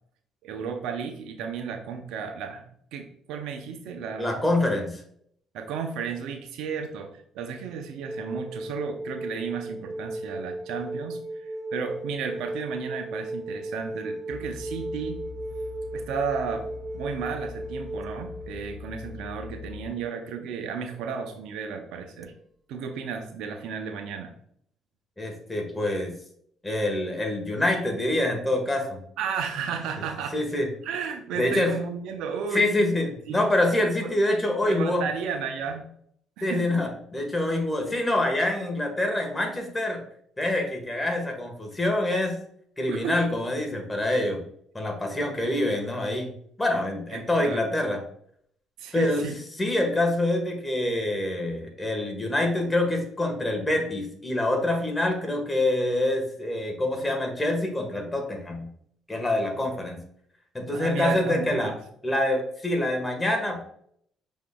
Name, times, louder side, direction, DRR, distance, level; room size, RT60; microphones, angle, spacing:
voice 1, 0.4-2.6 2.9-4.4 5.5-15.2 15.9-16.7 16.9-22.3 22.7-24.3 29.2-30.4 30.8-32.6 33.3-33.4 34.0-34.1 34.6-35.9 36.4-36.7 42.9-43.3 45.4-45.5 47.1-47.6 48.8-49.4 60.7-61.7, right 6 dB, 75° right, 5 dB, 0.6 m, -33 dB
voice 2, 4.2-5.0 25.2-26.1 26.6-29.0 30.3-30.7 31.4-31.7 32.5-35.0 36.4-40.0 40.4-42.4 42.8-44.4 44.7-46.3 46.6-48.0 48.9-49.2 49.6-58.7 59.1-60.0 60.5-61.7 62.0-63.6, left 1 dB, 15° left, 3 dB, 1.4 m, -26 dB
sound 1, 8.0-20.5 22.2-22.3, right 1 dB, 25° right, 0.3 m, -36 dB
sound 2, 14.3-19.9, left 6 dB, 50° left, 0.6 m, -42 dB
6.0 x 3.6 x 2.3 m, 0.66 s
supercardioid pair, 65°, 0 cm